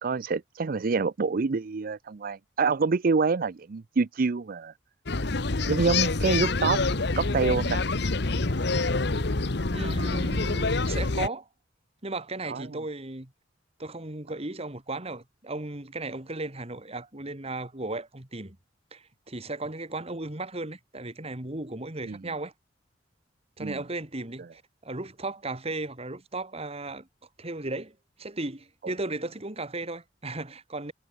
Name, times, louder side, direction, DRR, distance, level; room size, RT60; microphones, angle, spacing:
voice 1, 0.0-4.7 5.7-6.8 7.2-7.8 12.5-12.6 22.0-22.2 23.6-23.8, right 4 dB, 50° right, 0.5 m, -26 dB
sound 1, 5.1-11.3, left 3 dB, 65° left, 1.3 m, -26 dB
voice 2, 9.7-11.5 12.0-13.3 13.8-18.6 18.9-22.5 23.6-27.1 27.4-30.9, right 2 dB, 35° right, 2.4 m, -35 dB
head